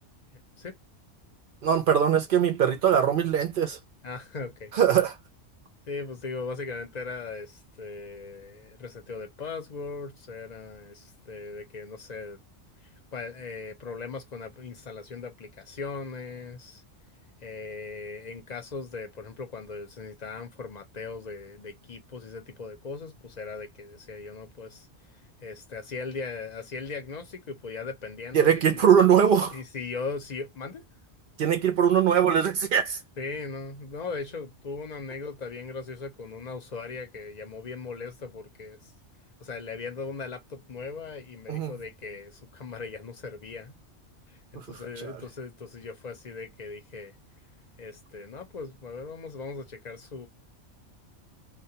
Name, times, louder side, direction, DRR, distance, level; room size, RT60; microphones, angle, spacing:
voice 1, 0.3-0.8 4.0-4.7 5.9-12.4 13.1-16.8 17.4-28.8 29.5-30.8 33.2-38.9 39.4-43.8 44.3-47.2 47.8-50.3, left 4 dB, 45° left, 0.7 m, -39 dB
voice 2, 1.6-3.8 4.7-5.2 28.3-29.5 31.4-33.0 41.5-41.7 44.7-45.2, right 8 dB, 60° right, 0.6 m, -22 dB
2.2 x 2.1 x 2.7 m
omnidirectional pair, 1.2 m